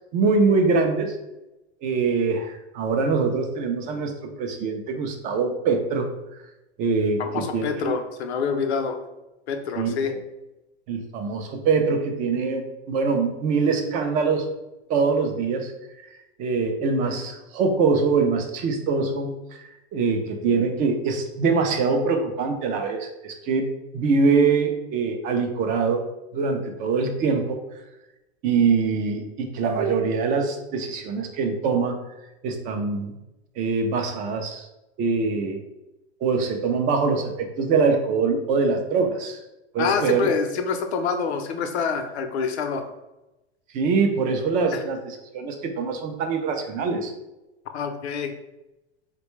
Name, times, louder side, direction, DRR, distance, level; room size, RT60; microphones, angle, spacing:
voice 1, 0.1-1.2 1.8-4.1 4.4-6.1 6.8-7.9 9.8-10.1 10.9-14.5 14.9-15.7 16.0-16.1 16.4-19.3 19.6-23.7 23.9-26.0 26.3-27.6 28.4-32.0 32.4-33.1 33.6-34.7 35.0-35.6 36.2-39.4 39.7-40.3 43.7-47.1, right 4 dB, 25° right, 4 dB, 0.4 m, -23 dB
voice 2, 7.2-9.0 9.5-10.2 39.8-42.9 44.7-44.8 47.7-48.3, left 6 dB, 75° left, 6 dB, 0.6 m, -26 dB
4.2 x 2.2 x 3.0 m, 0.97 s
hypercardioid pair, 130°, 34 cm